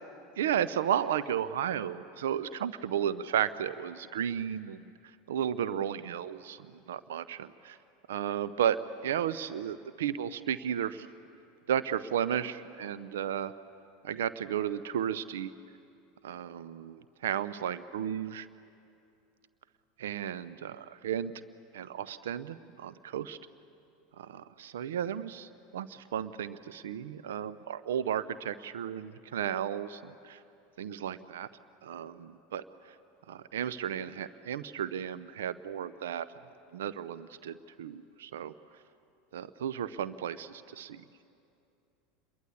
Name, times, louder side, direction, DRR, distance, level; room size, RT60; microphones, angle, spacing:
voice 1, 0.4-4.8 5.3-7.8 8.1-11.1 11.7-13.5 14.0-15.5 16.2-18.5 20.0-21.3 21.7-23.4 24.2-30.4 30.8-31.5 31.8-32.6 33.3-36.3 36.7-38.5 39.3-41.0, right 9 dB, 70° right, 16 dB, 0.6 m, -34 dB
28.0 x 22.0 x 8.4 m, 2.6 s
figure-of-eight pair, 80°, 0 cm